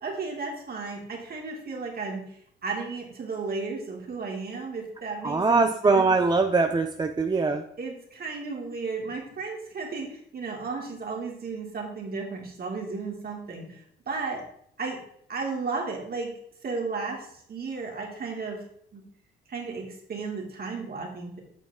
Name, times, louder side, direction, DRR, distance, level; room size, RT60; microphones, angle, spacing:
voice 1, 0.0-6.1 7.4-7.5 7.8-14.4 14.8-15.0 15.3-16.3 16.6-18.6 18.9-19.0 19.5-21.4, right 4 dB, 50° right, 0 dB, 2.7 m, -34 dB
voice 2, 5.2-7.6, right 3 dB, 20° right, 6 dB, 0.5 m, -22 dB
8.4 x 6.2 x 3.6 m, 0.69 s
cardioid pair, 90°, 20 cm